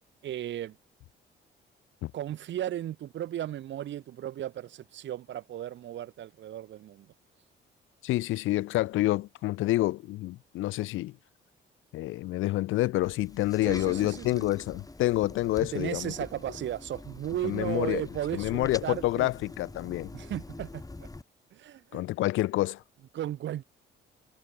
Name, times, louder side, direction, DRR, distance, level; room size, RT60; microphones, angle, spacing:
voice 1, 0.2-0.8 2.1-7.1 13.6-14.5 15.7-19.3 20.1-20.8 21.5-22.0 23.1-23.6, right 11 dB, 70° right, 1.3 m, -35 dB
voice 2, 8.0-11.2 11.9-16.1 17.4-18.0 18.3-20.1 21.9-22.8, left 17 dB, 90° left, 0.9 m, -28 dB
sound 1, 13.0-21.2, left 2 dB, 20° left, 6.5 m, -45 dB
cardioid pair, 90°, 20 cm